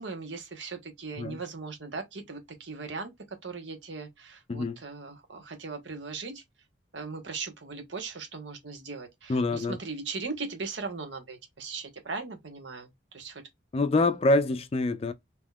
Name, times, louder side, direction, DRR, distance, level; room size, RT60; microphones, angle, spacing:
voice 1, 0.0-6.4 6.9-13.5 13.9-14.1, right 4 dB, 70° right, 1.1 m, -39 dB
voice 2, 9.3-9.8 13.7-15.1, left 2 dB, 30° left, 0.3 m, -25 dB
3.7 x 2.9 x 2.3 m
head